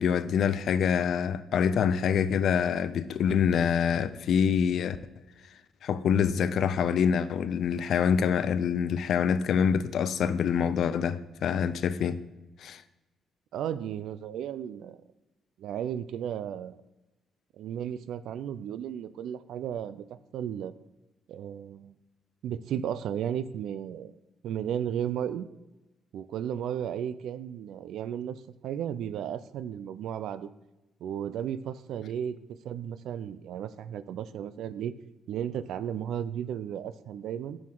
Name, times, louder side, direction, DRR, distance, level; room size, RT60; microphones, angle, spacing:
voice 1, 0.0-5.0 5.8-12.2 12.6-12.8, left 7 dB, 65° left, 0.4 m, -26 dB
voice 2, 13.5-15.0 15.6-16.8 17.6-20.1 20.3-20.7 21.3-21.9 22.4-24.1 24.4-25.5 26.1-30.5 31.0-32.4 32.6-34.9 35.3-37.6, right 9 dB, 80° right, 0.4 m, -34 dB
7.3 x 6.3 x 3.8 m
cardioid pair, 90°, 0 cm